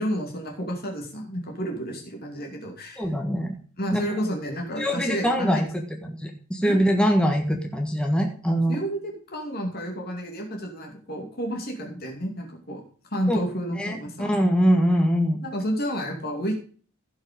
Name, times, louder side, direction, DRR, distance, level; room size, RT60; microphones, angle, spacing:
voice 1, 0.0-3.1 3.8-5.6 6.6-6.8 8.7-12.8 13.1-14.4 15.4-16.5, equal, 50° left, 1 dB, 2.6 m, -30 dB
voice 2, 3.0-3.5 3.9-4.0 4.8-8.8 13.3-13.4 13.8-15.4, equal, 5° left, 2 dB, 1.5 m, -23 dB
16.0 x 5.6 x 5.2 m, 0.42 s
head